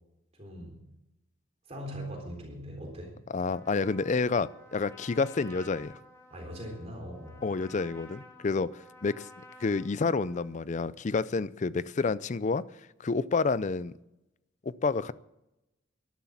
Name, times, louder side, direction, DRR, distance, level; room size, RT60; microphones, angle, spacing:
voice 1, 0.4-0.9 1.7-3.2 6.3-7.5, equal, 30° right, 1 dB, 3.8 m, -41 dB
voice 2, 3.3-5.9 7.4-9.3 9.6-12.6 13.0-13.9 14.7-15.1, left 4 dB, 35° left, 18 dB, 0.4 m, -29 dB
Trumpet, 3.5-10.6, left 2 dB, 15° left, 2.8 m, -53 dB
13.0 x 11.5 x 7.2 m, 0.91 s
head